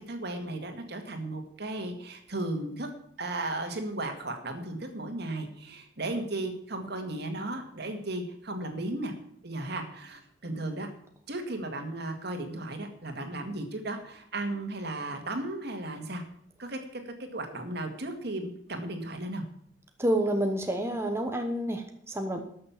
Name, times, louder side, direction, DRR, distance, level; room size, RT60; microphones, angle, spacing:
voice 1, 0.1-2.9 3.2-9.1 9.4-10.9 11.3-16.2 16.6-19.4, right 2 dB, 60° right, 5 dB, 2.0 m, -35 dB
voice 2, 20.0-22.4, right 1 dB, 15° right, 4 dB, 1.0 m, -28 dB
13.0 x 6.6 x 7.3 m, 0.69 s
head